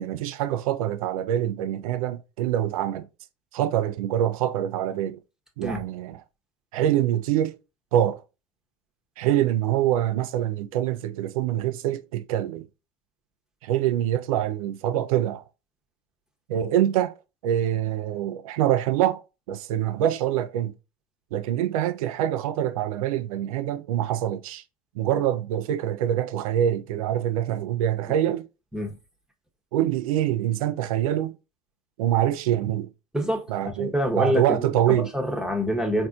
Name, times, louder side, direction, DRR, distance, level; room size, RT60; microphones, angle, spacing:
voice 1, 0.0-3.1 3.5-5.2 5.6-6.2 6.7-7.6 7.9-8.2 9.2-12.7 13.6-15.4 16.5-17.2 17.4-19.2 19.5-20.7 21.3-24.6 24.9-28.5 29.7-31.4 32.0-32.9 33.5-35.1, right 11 dB, 80° right, 0.5 m, -25 dB
voice 2, 33.1-33.5 33.8-36.1, equal, 5° right, 1.0 m, -26 dB
4.1 x 2.7 x 2.4 m
hypercardioid pair, 85°, 18 cm